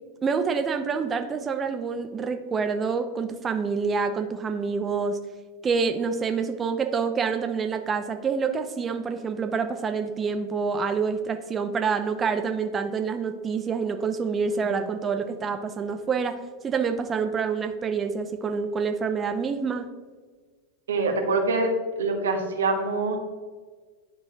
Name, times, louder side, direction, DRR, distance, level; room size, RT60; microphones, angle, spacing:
voice 1, 0.2-5.2 5.6-19.9, right 5 dB, 25° right, 6 dB, 0.5 m, -27 dB
voice 2, 20.9-21.7 22.0-23.2, right 3 dB, 85° right, 3 dB, 1.2 m, -24 dB
10.5 x 4.6 x 2.9 m, 1.4 s
hypercardioid pair, 105°, 0 cm